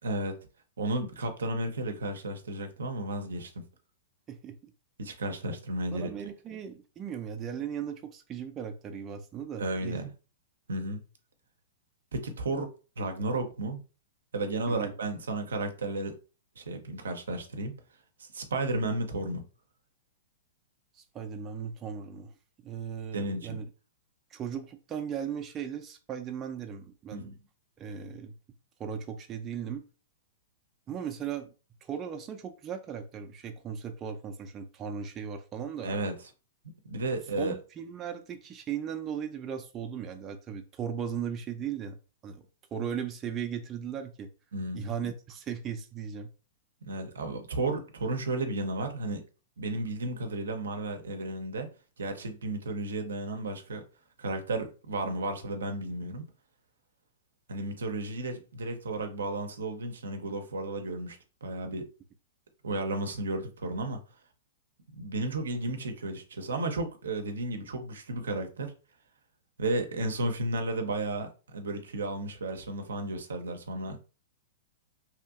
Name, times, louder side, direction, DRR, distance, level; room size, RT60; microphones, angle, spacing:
voice 1, 0.0-0.3 0.8-3.5 5.0-6.1 9.6-10.1 10.7-11.0 12.1-12.7 13.0-13.8 14.3-16.2 16.6-17.7 18.2-19.4 23.1-23.6 27.1-27.4 35.8-36.1 36.8-37.5 44.5-44.8 46.8-49.2 49.6-51.7 52.0-53.8 54.2-56.2 57.5-61.9 62.6-64.0 64.9-68.7 69.6-74.1, right 2 dB, 75° right, 0.6 m, -33 dB
voice 2, 4.3-4.7 5.9-10.0 14.7-14.9 20.9-22.3 22.6-23.7 24.3-27.3 27.8-28.3 28.8-29.8 30.9-31.5 31.8-35.9 37.4-42.0 42.2-42.5 42.7-44.3 44.7-46.3, right 8 dB, 25° right, 0.4 m, -37 dB
2.8 x 2.5 x 2.4 m
hypercardioid pair, 110°, 0 cm